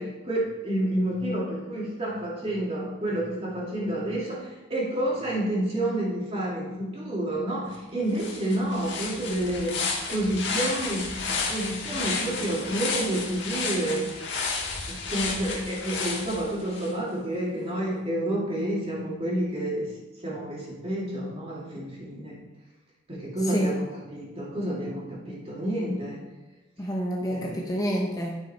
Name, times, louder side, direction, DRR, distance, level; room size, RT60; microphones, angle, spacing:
voice 1, 0.0-9.8 10.1-14.3 14.9-19.9 20.2-22.3 23.1-26.2 27.3-27.7, right 1 dB, 30° right, -5 dB, 2.6 m, -29 dB
sound 1, 7.7-7.8 8.1-16.9, left 4 dB, 60° left, 1.6 m, -32 dB
voice 2, 26.8-28.4, equal, 20° left, -1 dB, 0.8 m, -28 dB
9.9 x 6.2 x 4.4 m, 1.1 s
head